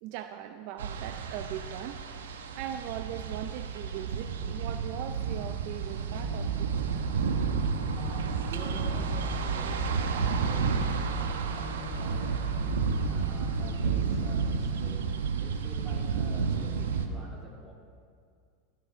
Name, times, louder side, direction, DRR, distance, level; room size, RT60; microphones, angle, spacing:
voice 1, 0.0-2.0 2.3-6.9, right 11 dB, 60° right, 8 dB, 0.5 m, -40 dB
sound 1, 0.8-17.1, right 6 dB, 85° right, 0.9 m, -31 dB
sound 2, 6.1-14.3, right 2 dB, 45° right, 2.9 m, -37 dB
voice 2, 7.9-12.7 13.0-15.1 15.4-17.7, right 1 dB, 20° right, -2 dB, 2.8 m, -47 dB
17.5 x 6.7 x 5.1 m, 2.3 s
hypercardioid pair, 105°, 0 cm